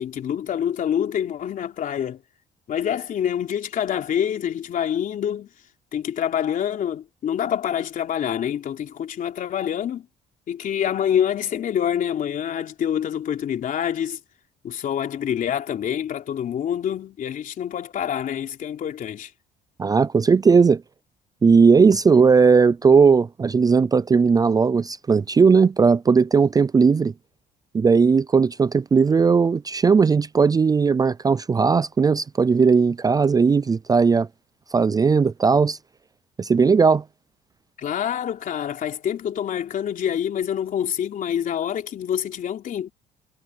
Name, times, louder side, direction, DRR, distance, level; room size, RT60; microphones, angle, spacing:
voice 1, 0.0-2.2 2.7-5.5 5.9-10.1 10.5-14.2 14.6-19.3 37.8-42.9, left 9 dB, 55° left, 3.5 m, -26 dB
voice 2, 19.8-20.8 21.4-27.1 27.7-34.3 34.7-35.8 36.4-37.0, right 5 dB, 20° right, 0.5 m, -17 dB
cardioid pair, 110°, 17 cm